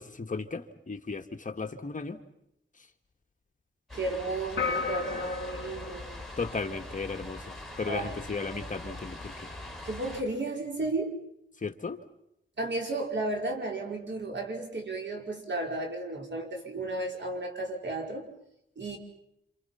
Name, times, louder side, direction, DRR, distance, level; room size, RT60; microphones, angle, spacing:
voice 1, 0.0-2.2 6.4-9.5 11.6-12.0, left 4 dB, 40° left, 6 dB, 1.8 m, -35 dB
sound 1, 3.9-10.2, left 1 dB, ahead, 7.0 m, -43 dB
voice 2, 3.9-6.1 7.9-8.1 9.8-11.2 12.6-18.3 18.8-19.0, right 2 dB, 60° right, 1 dB, 5.2 m, -33 dB
sound 2, 4.6-7.2, left 5 dB, 60° left, 2.6 m, -34 dB
28.0 x 28.0 x 5.8 m, 0.79 s
wide cardioid pair, 95°, 21 cm